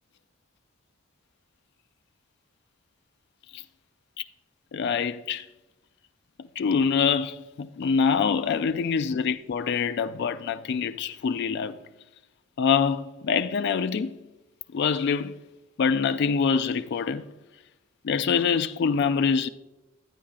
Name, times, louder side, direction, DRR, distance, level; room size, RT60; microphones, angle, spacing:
voice 1, 4.7-5.5 6.4-11.8 12.6-14.2 14.7-15.4 15.8-17.2 18.0-19.5, left 6 dB, 55° left, 0.3 m, -25 dB
10.0 x 9.5 x 2.4 m
head